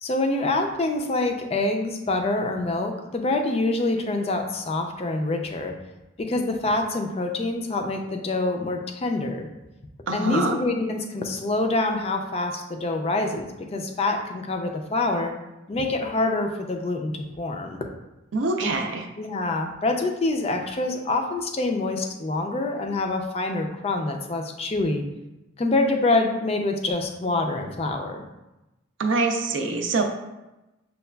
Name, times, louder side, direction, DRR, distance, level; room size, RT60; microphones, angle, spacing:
voice 1, 0.0-5.7 6.2-9.5 10.1-15.3 15.7-17.9 18.6-18.7 19.2-25.0 25.6-28.2, left 2 dB, 30° left, 3 dB, 0.3 m, -26 dB
voice 2, 10.1-10.6 18.3-19.1 29.0-30.0, right 3 dB, 65° right, 3 dB, 0.4 m, -24 dB
6.4 x 2.3 x 2.2 m, 1.0 s
head